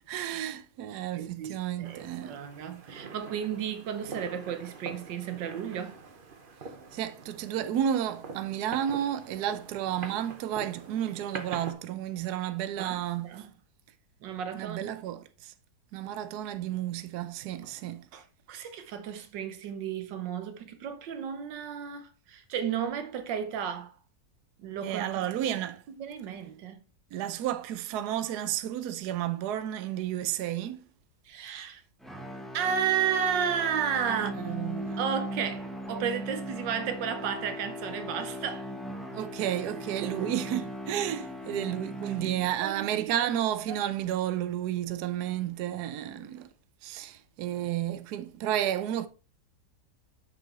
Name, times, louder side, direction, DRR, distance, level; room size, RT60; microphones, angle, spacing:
voice 1, 0.1-2.4 6.9-13.5 14.5-15.5 15.9-18.1 24.8-25.8 27.1-30.9 34.1-35.0 39.1-46.5 46.8-49.1, right 11 dB, 70° right, 1.2 m, -32 dB
voice 2, 1.2-6.0 12.8-13.5 14.2-15.0 17.6-17.7 18.1-24.0 24.6-25.6 26.0-26.8 31.2-31.8 32.5-34.5 35.0-38.7 40.0-40.3 42.6-43.3 43.7-43.8, right 8 dB, 90° right, 1.6 m, -33 dB
sound 1, 1.8-11.7, right 5 dB, 40° right, 0.8 m, -44 dB
sound 2, 32.0-42.8, equal, ahead, 0.9 m, -39 dB
7.1 x 5.9 x 4.2 m
omnidirectional pair, 1.9 m